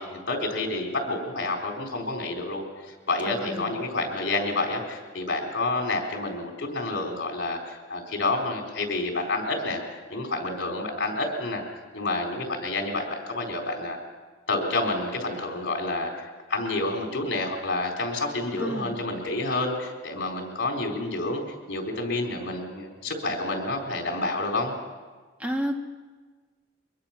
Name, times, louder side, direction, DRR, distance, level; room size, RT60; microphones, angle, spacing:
voice 1, 0.0-11.7 11.9-14.0 14.5-21.4 21.7-24.7, left 2 dB, 65° left, 1 dB, 4.0 m, -29 dB
voice 2, 3.3-3.7 18.6-18.9 25.4-25.8, equal, 5° right, 2 dB, 1.8 m, -30 dB
23.5 x 21.5 x 5.9 m, 1.4 s
head